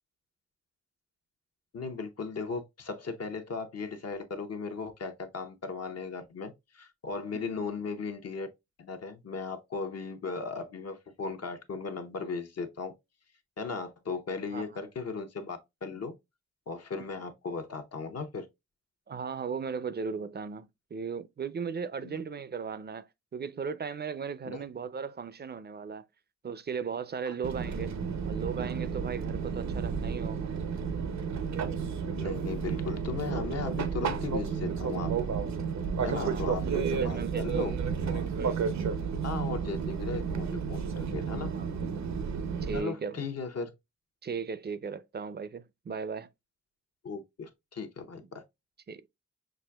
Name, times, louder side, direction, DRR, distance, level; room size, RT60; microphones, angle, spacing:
voice 1, 1.7-8.5 8.8-12.9 13.6-16.1 16.7-18.5 22.0-22.2 24.5-24.6 27.3-27.4 32.2-35.1 36.0-37.7 38.1-38.3 39.2-41.5 42.7-43.7 47.0-48.4, left 4 dB, 60° left, 0.8 m, -37 dB
voice 2, 7.3-7.7 14.5-14.8 19.1-26.0 26.4-27.9 28.3-30.5 36.0-36.4 36.8-37.8 38.4-39.0 41.5-41.7 42.6-43.2 44.2-46.3 48.9-49.0, right 6 dB, 35° right, 0.5 m, -37 dB
Fixed-wing aircraft airplane, 27.4-42.8, right 6 dB, 75° right, 0.7 m, -32 dB
6.1 x 2.6 x 2.2 m
cardioid pair, 75°, 29 cm